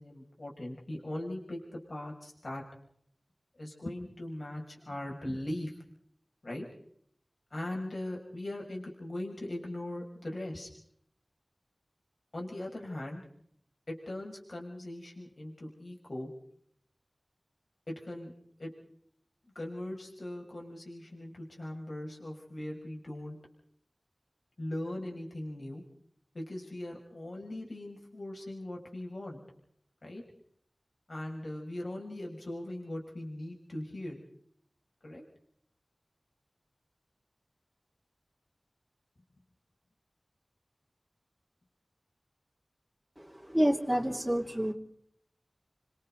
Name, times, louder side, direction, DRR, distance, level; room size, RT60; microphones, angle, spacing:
voice 1, 0.0-2.6 3.5-5.7 6.4-6.7 7.5-10.7 12.3-13.2 13.9-16.3 17.9-18.3 18.6-18.7 19.5-23.4 24.6-25.8 26.3-29.4 30.0-30.2 31.1-34.2 35.0-35.2, left 1 dB, 65° left, -1 dB, 6.6 m, -40 dB
voice 2, 43.5-44.7, equal, 5° right, -4 dB, 2.9 m, -28 dB
29.5 x 26.5 x 4.0 m, 0.66 s
wide cardioid pair, 50°, 0 cm